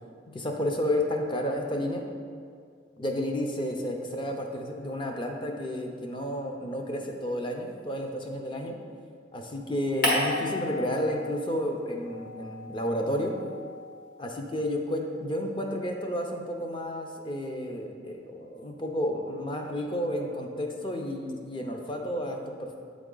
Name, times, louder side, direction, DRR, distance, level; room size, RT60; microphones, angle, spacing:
voice 1, 0.3-2.0 3.0-8.8 9.3-13.4 14.2-22.8, equal, 25° left, 2 dB, 0.5 m, -31 dB
sound 1, 10.0-11.7 12.0-14.5, left 1 dB, 50° left, 1.4 m, -33 dB
8.0 x 3.6 x 3.8 m, 2.1 s
head